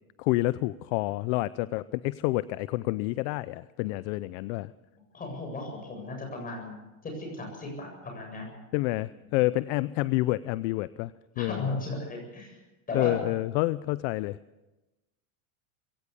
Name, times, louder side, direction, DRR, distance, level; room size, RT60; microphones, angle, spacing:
voice 1, 0.2-4.7 8.7-11.1 11.4-11.7 12.9-14.4, left 19 dB, 60° left, 17 dB, 0.6 m, -28 dB
voice 2, 5.1-8.4 11.4-12.6 12.9-13.2, left 3 dB, 20° left, 2 dB, 7.8 m, -36 dB
22.0 x 17.0 x 7.1 m, 1.1 s
supercardioid pair, 150°, 42 cm